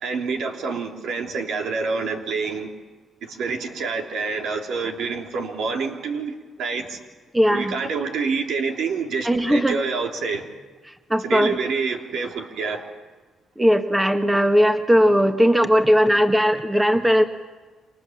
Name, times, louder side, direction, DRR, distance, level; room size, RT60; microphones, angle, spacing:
voice 1, 0.0-2.7 3.2-7.0 7.5-10.4 11.2-12.9, right 4 dB, 75° right, 3 dB, 3.1 m, -27 dB
voice 2, 7.3-7.7 9.2-9.8 11.1-11.5 13.6-17.2, equal, 10° right, 6 dB, 1.7 m, -18 dB
29.0 x 25.0 x 7.2 m, 1.3 s
cardioid pair, 90°, 0 cm